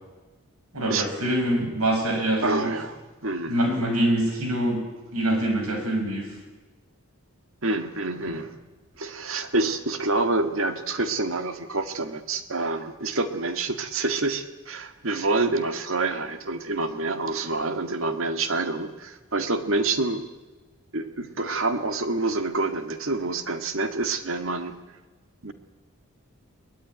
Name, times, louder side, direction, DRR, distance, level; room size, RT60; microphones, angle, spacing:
voice 1, 0.7-2.7 3.5-4.8 5.1-6.3 8.2-8.3, right 1 dB, 85° right, 4 dB, 6.7 m, -24 dB
voice 2, 2.4-3.8 7.6-8.5 9.0-20.3 20.9-24.8 25.4-25.5, right 3 dB, 65° right, 8 dB, 1.8 m, -27 dB
23.5 x 19.0 x 9.5 m, 1.2 s
head